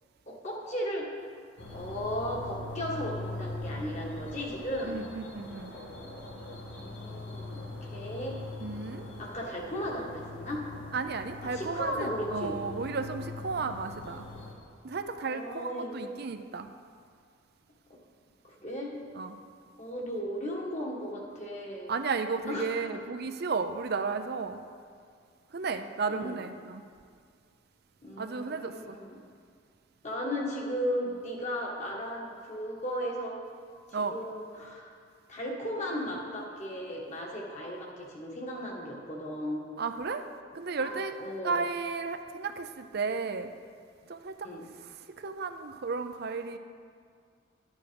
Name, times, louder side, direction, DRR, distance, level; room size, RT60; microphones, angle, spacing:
voice 1, 0.3-1.1 1.7-5.0 6.7-8.4 9.2-10.6 11.4-12.6 15.2-16.1 18.4-19.0 19.8-21.9 22.5-23.0 26.1-26.4 28.0-29.2 30.0-33.4 33.9-34.9 35.3-39.6 40.8-41.6 44.4-44.7, equal, 35° left, -2 dB, 1.9 m, -36 dB
sound 1, 1.6-14.5, left 2 dB, 75° left, 2.2 m, -42 dB
voice 2, 4.8-5.7 8.6-9.0 10.9-14.2 14.8-16.7 19.2-19.4 21.9-24.6 25.5-26.8 28.2-28.9 33.9-34.2 39.8-40.2 40.5-41.2 41.4-43.5 44.1-44.3 45.2-46.6, right 4 dB, 55° right, 7 dB, 0.5 m, -33 dB
12.0 x 9.1 x 5.2 m, 2.1 s
head